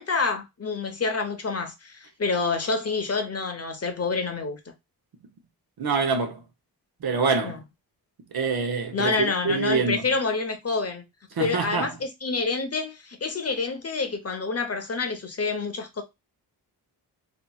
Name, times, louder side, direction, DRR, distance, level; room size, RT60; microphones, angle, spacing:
voice 1, 0.0-4.6 7.4-7.6 8.9-11.0 11.4-16.0, left 4 dB, 35° left, 0.7 m, -28 dB
voice 2, 5.8-6.4 7.0-7.6 8.3-10.0 11.4-11.9, right 4 dB, 60° right, 0.8 m, -25 dB
2.8 x 2.7 x 2.2 m
cardioid pair, 55°, 42 cm